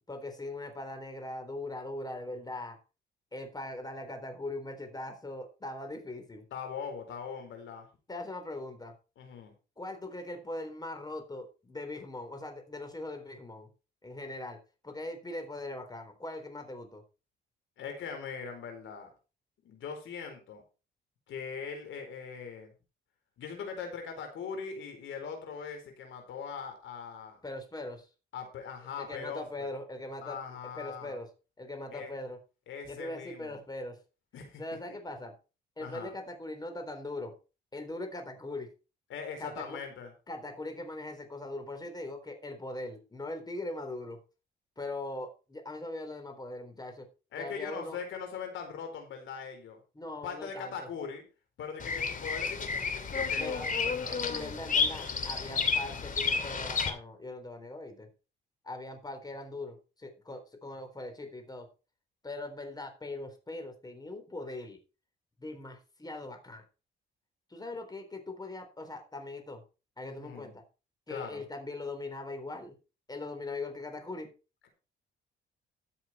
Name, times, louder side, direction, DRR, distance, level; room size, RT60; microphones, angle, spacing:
voice 1, 0.1-2.8 3.3-6.4 8.1-9.0 9.8-13.7 14.0-17.0 27.4-28.1 29.0-31.3 31.6-32.4 32.9-34.0 34.6-35.4 35.8-37.3 37.7-38.7 39.4-39.8 40.3-44.2 44.8-47.1 47.4-48.0 49.9-50.9 53.4-53.7 54.0-58.1 58.6-61.7 62.2-64.8 65.4-66.6 67.5-69.6 70.0-70.6 71.1-72.8 73.1-74.3, left 2 dB, 20° left, 6 dB, 3.9 m, -40 dB
voice 2, 6.5-7.9 9.2-9.5 17.8-19.1 19.6-20.6 21.3-22.7 23.4-27.4 28.3-29.7 30.2-31.1 31.9-32.1 32.7-33.6 34.3-34.6 35.8-36.1 39.1-40.1 47.3-49.8 50.2-51.2 51.6-54.2 70.0-70.5 71.1-71.4, left 6 dB, 75° left, 5 dB, 4.5 m, -41 dB
Bird vocalization bird call bird song, 51.8-56.9, left 5 dB, 40° left, 2.6 m, -31 dB
14.0 x 7.7 x 4.4 m, 0.32 s
cardioid pair, 90°, 20 cm